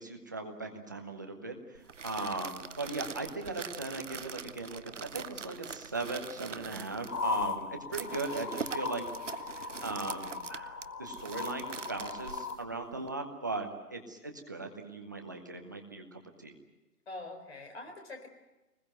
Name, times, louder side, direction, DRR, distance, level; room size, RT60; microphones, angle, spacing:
voice 1, 0.0-9.0 9.5-16.5, right 3 dB, 10° right, 4 dB, 0.8 m, -39 dB
sound 1, 1.7-13.1, right 6 dB, 50° right, 0.8 m, -43 dB
sound 2, 7.1-12.6, left 4 dB, 70° left, 1.3 m, -38 dB
voice 2, 17.1-18.3, left 2 dB, 40° left, 4 dB, 4.4 m, -44 dB
22.5 x 20.5 x 9.1 m, 1.1 s
figure-of-eight pair, 155°, 47 cm